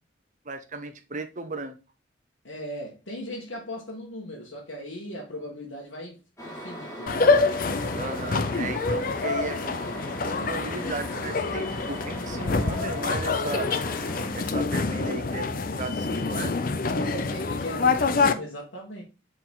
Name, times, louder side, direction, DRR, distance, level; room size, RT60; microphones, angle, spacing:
voice 1, 0.4-1.8 8.0-13.7 14.3-16.5, right 3 dB, 40° right, 0.9 m, -35 dB
voice 2, 2.4-6.2 6.4-7.2 16.9-19.0, equal, 75° left, 1.8 m, -38 dB
sound 1, 6.4-14.3, equal, 15° left, 2.0 m, -39 dB
sound 2, 7.1-18.3, left 4 dB, 45° left, 0.5 m, -26 dB
6.9 x 4.1 x 3.7 m
head